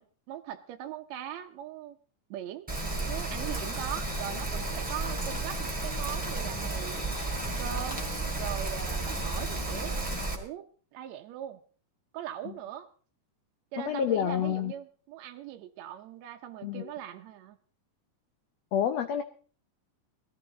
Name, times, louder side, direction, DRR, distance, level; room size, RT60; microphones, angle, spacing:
voice 1, 0.0-2.0 2.3-2.7 3.1-7.0 7.6-8.0 8.4-10.0 10.3-11.6 12.1-12.9 13.7-17.6, right 10 dB, 75° right, 5 dB, 1.6 m, -40 dB
Rain, 2.7-10.3, right 2 dB, 5° right, 2.4 m, -32 dB
voice 2, 13.8-14.7 16.6-16.9 18.7-19.2, left 9 dB, 70° left, 8 dB, 1.6 m, -28 dB
19.0 x 13.5 x 3.9 m, 0.41 s
omnidirectional pair, 3.9 m